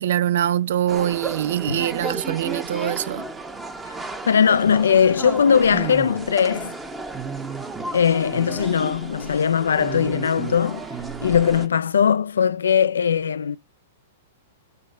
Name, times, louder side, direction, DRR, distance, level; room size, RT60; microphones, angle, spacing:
voice 1, 0.0-3.3, right 11 dB, 65° right, 0.4 m, -23 dB
sound 1, 0.9-11.7, right 3 dB, 15° right, 1.1 m, -33 dB
voice 2, 4.2-6.8 7.9-10.8 11.2-13.6, left 7 dB, 80° left, 0.3 m, -19 dB
6.5 x 3.3 x 5.3 m
hypercardioid pair, 115°, 0 cm